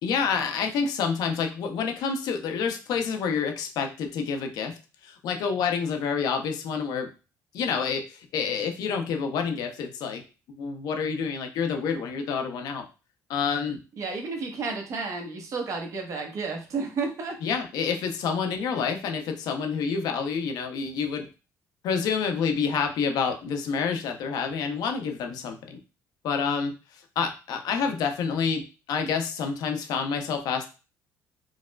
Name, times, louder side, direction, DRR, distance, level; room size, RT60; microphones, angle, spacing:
voice 1, 0.0-4.8 5.0-7.1 7.5-10.2 10.6-12.8 13.3-13.8 17.4-21.3 21.8-25.8 26.2-26.7 27.2-30.7, left 6 dB, 75° left, 5 dB, 0.6 m, -28 dB
voice 2, 14.0-17.4, right 4 dB, 50° right, 2 dB, 0.9 m, -31 dB
4.6 x 2.1 x 2.2 m, 0.32 s
cardioid pair, 95°, 7 cm